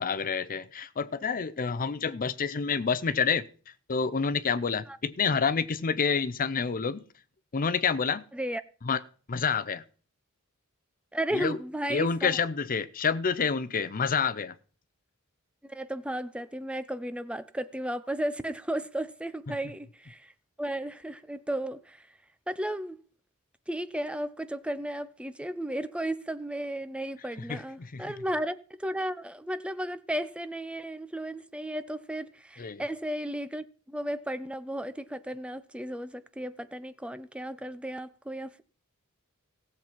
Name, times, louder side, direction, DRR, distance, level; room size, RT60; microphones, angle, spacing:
voice 1, 0.0-3.5 3.9-7.0 7.5-8.3 8.8-9.0 9.3-9.8 11.3-11.6 11.9-14.5 19.5-19.6 27.5-28.1 32.6-32.8, left 5 dB, 40° left, 0.6 m, -28 dB
voice 2, 11.1-12.4 15.7-20.3 20.6-22.1 22.5-23.0 23.7-38.6, right 1 dB, 5° right, 0.5 m, -34 dB
16.0 x 7.3 x 4.5 m
head